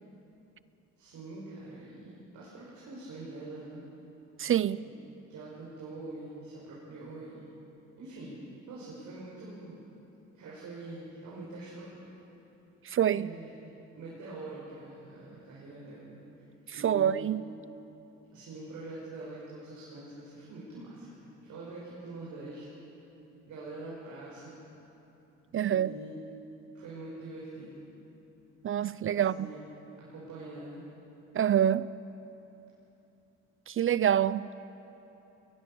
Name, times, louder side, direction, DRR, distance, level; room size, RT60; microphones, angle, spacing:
voice 1, 1.0-3.8 4.8-5.0 5.3-7.5 8.0-8.4 8.7-9.8 10.3-11.9 13.1-13.5 13.9-16.2 16.7-17.2 18.3-22.6 23.5-24.6 25.6-26.2 26.7-27.9 29.1-29.6 30.0-30.9, right 2 dB, 75° right, 5.7 m, -44 dB
voice 2, 4.4-4.8 12.9-13.3 16.8-17.4 25.5-25.9 28.6-29.5 31.3-31.9 33.7-34.5, right 10 dB, 45° right, 0.5 m, -26 dB
21.0 x 20.5 x 6.9 m
cardioid pair, 90°, 30 cm